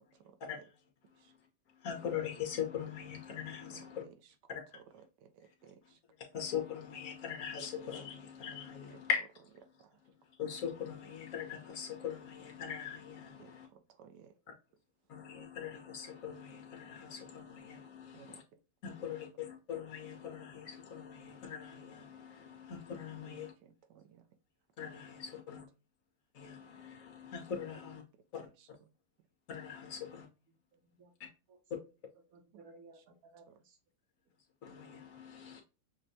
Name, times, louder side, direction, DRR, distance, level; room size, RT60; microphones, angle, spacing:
voice 1, 1.8-4.0 4.5-4.6 6.3-9.2 10.4-13.7 15.1-18.4 18.8-23.5 24.8-25.6 26.3-28.0 28.3-28.5 29.5-30.3 34.6-35.6, left 7 dB, 55° left, 1.3 m, -41 dB
voice 2, 3.7-4.1 4.7-4.8 5.4-5.8 8.9-9.0 13.4-13.5 14.0-14.3 18.1-18.4 23.2-24.2, right 8 dB, 85° right, 1.3 m, -57 dB
voice 3, 32.3-33.8, right 3 dB, 65° right, 1.3 m, -58 dB
6.2 x 2.2 x 2.6 m
omnidirectional pair, 1.8 m